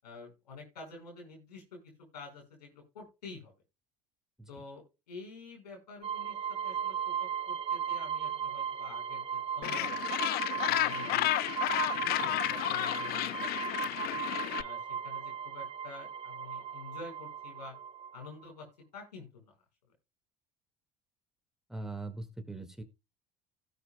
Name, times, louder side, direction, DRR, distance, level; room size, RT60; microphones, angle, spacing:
voice 1, 0.0-3.5 4.5-10.0 10.7-11.5 12.0-14.1 14.6-17.7 18.1-18.7 18.9-19.5, left 4 dB, 85° left, 2 dB, 5.3 m, -49 dB
sound 1, 6.0-18.5, right 8 dB, 30° right, 0.6 m, -37 dB
Gull seagull, 9.6-14.6, left 16 dB, 50° left, 0.5 m, -32 dB
voice 2, 21.7-22.8, right 3 dB, ahead, 6 dB, 2.1 m, -41 dB
17.0 x 8.0 x 2.3 m, 0.27 s
hypercardioid pair, 70°, 21 cm